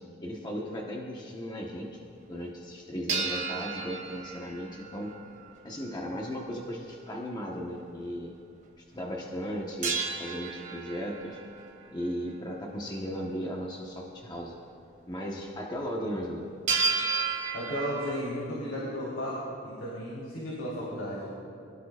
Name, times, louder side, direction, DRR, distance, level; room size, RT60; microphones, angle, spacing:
voice 1, 0.2-2.0 2.3-5.1 5.6-8.3 8.9-11.4 11.9-14.6 15.1-16.5, equal, 20° left, -2 dB, 1.2 m, -36 dB
sound 1, 3.1-5.5 9.8-11.7 16.7-18.2, right 4 dB, 40° right, 2.1 m, -32 dB
voice 2, 17.5-19.4 19.6-21.3, equal, 70° left, -6 dB, 3.6 m, -34 dB
26.0 x 16.5 x 2.5 m, 2.7 s
head